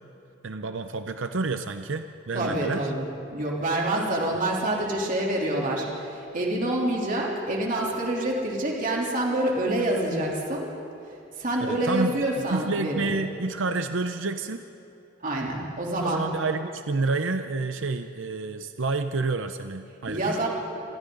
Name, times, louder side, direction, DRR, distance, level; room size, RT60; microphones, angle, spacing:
voice 1, 0.4-2.9 11.6-12.2 12.5-14.7 16.0-20.2, right 3 dB, 80° right, 8 dB, 0.7 m, -29 dB
voice 2, 2.3-10.7 11.4-13.2 15.2-16.3 20.1-20.5, right 1 dB, 45° right, -2 dB, 3.4 m, -27 dB
29.0 x 22.5 x 3.9 m, 2.8 s
head